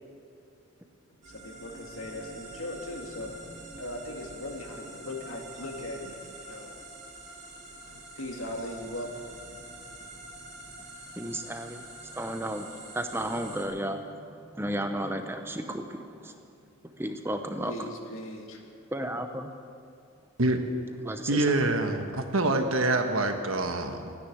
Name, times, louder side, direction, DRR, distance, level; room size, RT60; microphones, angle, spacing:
sound 1, 1.2-13.7, right 2 dB, 35° right, 3.7 m, -46 dB
voice 1, 1.3-3.4 3.8-6.8 7.6-9.3 9.5-9.9 16.9-17.0 17.7-18.7, left 1 dB, 80° left, 1 dB, 2.1 m, -39 dB
voice 2, 11.2-16.5 16.8-17.9 18.9-19.5 21.0-21.5, right 1 dB, 10° right, 6 dB, 0.8 m, -34 dB
voice 3, 21.3-24.1, right 2 dB, 80° right, 5 dB, 1.4 m, -26 dB
14.5 x 10.0 x 8.7 m, 2.3 s
head